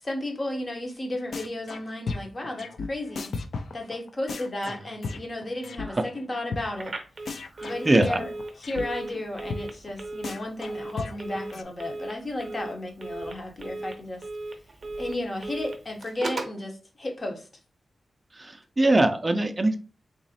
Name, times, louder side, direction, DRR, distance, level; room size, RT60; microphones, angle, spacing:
voice 1, 0.0-3.3 3.7-7.0 7.6-8.3 8.6-14.3 15.0-17.5, left 1 dB, 30° left, 2 dB, 0.8 m, -33 dB
sound 1, 1.3-1.8 2.1-5.9 6.2-6.3 6.5-6.6 6.9-7.0 7.3-8.8 9.1-9.2 9.5-9.6 9.9-10.0 10.2-11.6, left 4 dB, 65° left, 0.4 m, -34 dB
Telephone, 6.7-16.6, right 2 dB, 40° right, 0.7 m, -38 dB
voice 2, 7.6-8.2 18.3-19.8, right 2 dB, 20° right, 6 dB, 0.4 m, -22 dB
3.9 x 3.0 x 2.7 m, 0.35 s
wide cardioid pair, 170°, 0 cm